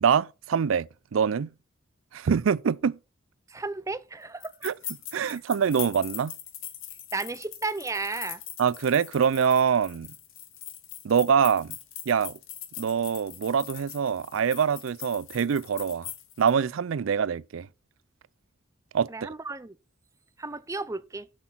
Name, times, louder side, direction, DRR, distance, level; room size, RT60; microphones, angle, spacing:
voice 1, 0.0-1.5 2.1-3.0 4.6-4.7 5.1-6.3 8.6-10.1 11.0-11.8 12.1-12.4 12.8-16.1 16.4-17.7 18.9-19.3, right 7 dB, 75° right, 0.4 m, -24 dB
voice 2, 3.5-4.5 7.1-8.4 19.1-19.8 20.4-21.3, right 3 dB, 15° right, 0.6 m, -33 dB
sound 1, 4.4-16.5, left 11 dB, 80° left, 1.6 m, -42 dB
7.8 x 6.2 x 5.8 m
head